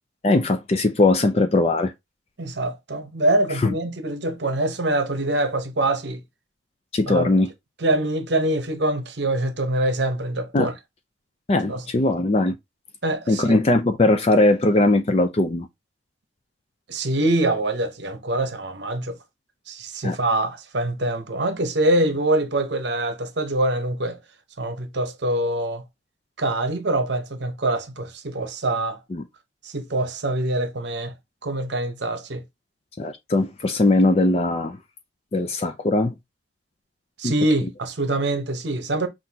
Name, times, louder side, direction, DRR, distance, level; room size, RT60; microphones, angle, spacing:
voice 1, 0.2-1.9 3.6-3.7 6.9-7.5 10.5-10.7 11.5-12.5 13.3-15.7 20.0-20.2 29.1-29.2 33.0-34.8 35.3-36.1 37.2-37.3, left 2 dB, 30° left, 0.4 m, -20 dB
voice 2, 2.4-6.2 7.1-7.3 7.8-10.7 11.7-11.8 13.0-13.6 16.9-19.2 19.7-24.2 24.6-25.8 26.4-29.0 29.6-31.1 31.4-32.4 37.2-39.1, right 1 dB, 60° right, 0.9 m, -24 dB
5.8 x 2.6 x 2.7 m
head